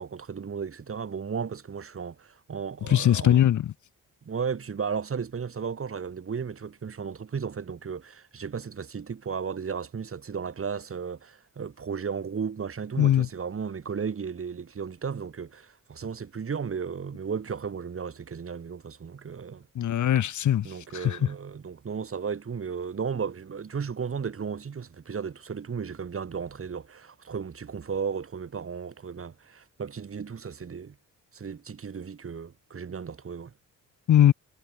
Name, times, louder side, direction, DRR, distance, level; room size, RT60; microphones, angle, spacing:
voice 1, 0.0-3.5 4.2-19.7 20.6-31.0 31.3-33.5, right 6 dB, 40° right, 2.3 m, -34 dB
voice 2, 2.9-3.7 13.0-13.3 19.8-20.7 20.9-21.2 34.1-34.3, left 11 dB, 65° left, 0.9 m, -20 dB
cardioid pair, 85°, 33 cm